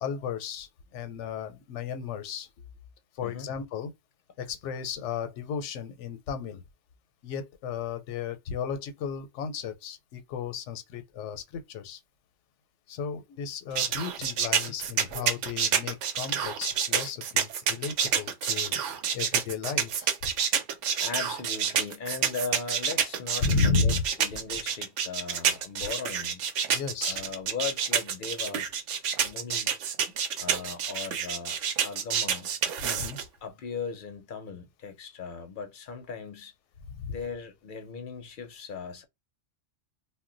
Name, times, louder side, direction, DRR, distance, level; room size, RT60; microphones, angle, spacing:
voice 1, 0.0-2.5 3.1-3.9 4.4-6.6 7.2-12.0 12.9-20.3 23.4-24.0 26.7-27.2 32.8-33.2 36.9-37.2, left 5 dB, 85° left, 0.9 m, -33 dB
sound 1, 13.7-33.2, right 8 dB, 85° right, 0.9 m, -28 dB
voice 2, 21.0-26.4 27.0-28.7 29.2-29.7 30.4-32.5 33.4-36.5 37.1-39.0, left 5 dB, 55° left, 0.6 m, -38 dB
2.1 x 2.1 x 3.7 m
omnidirectional pair, 1.2 m